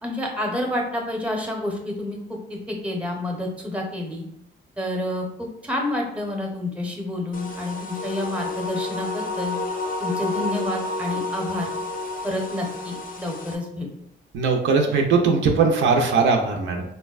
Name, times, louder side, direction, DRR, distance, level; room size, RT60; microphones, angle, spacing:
voice 1, 0.0-2.2 2.5-4.2 4.8-9.6 10.0-11.7 12.2-13.9, left 1 dB, 5° right, 0 dB, 0.7 m, -29 dB
sound 1, 7.3-13.5, left 2 dB, 45° left, 0.5 m, -30 dB
voice 2, 14.3-16.8, right 4 dB, 75° right, 2 dB, 0.5 m, -20 dB
3.8 x 2.1 x 2.3 m, 0.77 s
cardioid pair, 90°, 20 cm